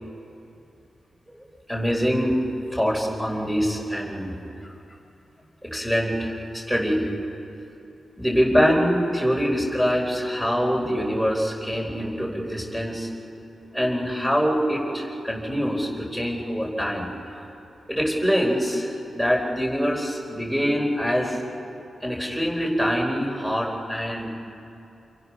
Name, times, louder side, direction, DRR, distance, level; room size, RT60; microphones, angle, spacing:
voice 1, 1.3-4.4 5.6-7.1 8.2-13.1 13.7-17.1 17.9-21.4 22.0-24.3, equal, ahead, -1 dB, 4.2 m, -24 dB
29.5 x 29.0 x 6.2 m, 2.7 s
wide cardioid pair, 175°, 0 cm